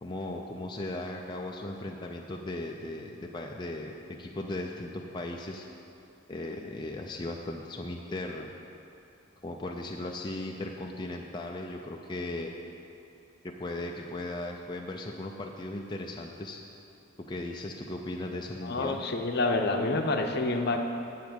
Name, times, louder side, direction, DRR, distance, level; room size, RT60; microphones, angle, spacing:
voice 1, 0.0-5.7 6.3-8.5 9.4-12.5 13.4-16.6 17.2-19.0, left 1 dB, 20° left, 0 dB, 0.4 m, -37 dB
voice 2, 18.6-20.8, left 2 dB, 55° left, 4 dB, 0.7 m, -28 dB
8.2 x 7.0 x 7.9 m, 2.8 s
head